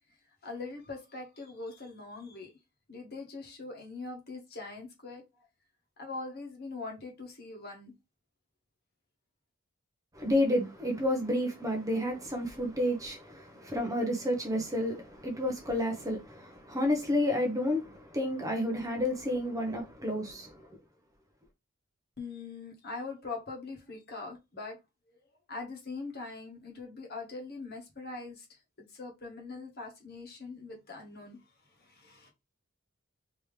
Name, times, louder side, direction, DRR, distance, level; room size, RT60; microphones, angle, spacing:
voice 1, 0.4-2.5 2.9-5.3 6.0-7.9 22.2-24.8 25.5-28.6 28.9-32.3, left 3 dB, 45° left, 1.3 m, -42 dB
voice 2, 10.2-20.5, left 1 dB, 15° right, 0.7 m, -30 dB
3.5 x 3.0 x 3.2 m
head